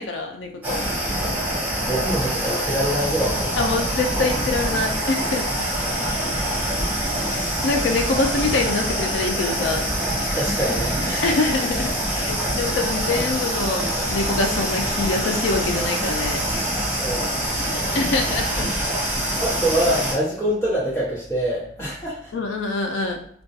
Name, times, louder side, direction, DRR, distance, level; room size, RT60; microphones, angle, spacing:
voice 1, 0.0-0.9 3.6-5.6 7.3-9.9 11.2-16.4 17.9-18.7 22.3-23.2, left 3 dB, 80° left, 4 dB, 0.4 m, -25 dB
sound 1, 0.6-20.1, right 1 dB, 10° right, 0.6 m, -25 dB
voice 2, 1.0-3.7 5.6-6.1 7.3-7.4 10.3-11.3 17.0-17.7 19.4-22.3, right 1 dB, 15° left, -9 dB, 1.1 m, -26 dB
2.2 x 2.2 x 2.7 m, 0.64 s
head